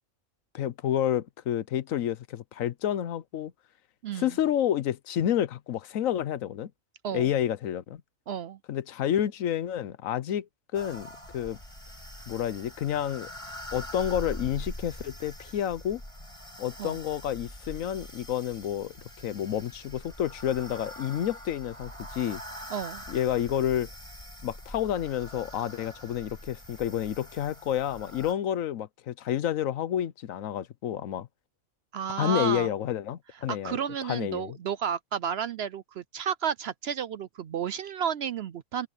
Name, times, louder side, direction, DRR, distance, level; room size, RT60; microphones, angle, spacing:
voice 1, 0.5-3.5 4.1-6.7 7.1-8.0 8.7-11.6 12.3-13.3 13.7-16.0 16.6-18.9 19.2-22.4 23.1-23.9 24.4-31.3 32.2-34.6, left 10 dB, 80° left, 1.2 m, -29 dB
voice 2, 8.3-8.6 16.8-17.0 22.7-23.0 31.9-32.7 33.5-38.9, right 8 dB, 60° right, 0.7 m, -32 dB
sound 1, 10.7-28.3, equal, 20° left, 8.2 m, -43 dB
omnidirectional pair, 1.4 m